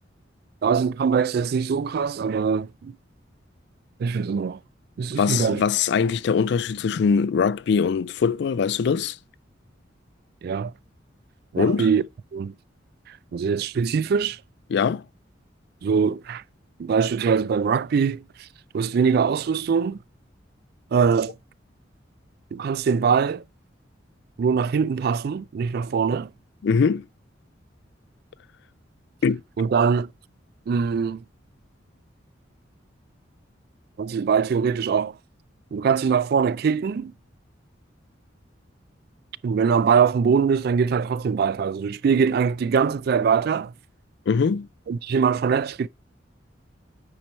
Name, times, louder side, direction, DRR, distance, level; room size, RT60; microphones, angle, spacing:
voice 1, 0.6-2.9 4.0-4.6 5.0-5.6 10.4-10.7 11.5-12.0 12.3-12.5 13.1-14.4 15.8-16.4 16.8-18.5 18.7-20.0 20.9-21.3 22.5-23.4 24.4-26.3 29.6-30.1 30.7-31.2 34.0-35.2 35.7-37.1 39.4-43.7 44.9-45.9, right 6 dB, 55° right, 0.3 m, -22 dB
voice 2, 5.2-9.2 11.6-11.9 14.7-15.0 26.6-27.1 29.2-29.4 44.3-44.7, left 6 dB, 65° left, 0.3 m, -22 dB
8.9 x 4.6 x 4.3 m
head